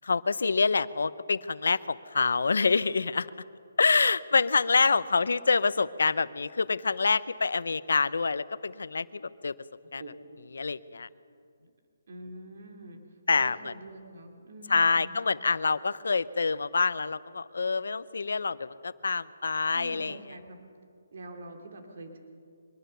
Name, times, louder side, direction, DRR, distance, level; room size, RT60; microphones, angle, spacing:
voice 1, 0.0-3.3 3.8-9.5 9.9-10.0 10.5-11.1 13.3-13.7 14.7-20.2, left 4 dB, 80° left, 16 dB, 0.8 m, -26 dB
voice 2, 12.1-13.0 13.3-15.3 19.7-20.6 21.1-22.2, right 1 dB, 55° right, 3 dB, 3.0 m, -45 dB
24.0 x 20.5 x 6.9 m, 2.3 s
hypercardioid pair, 170°, 0 cm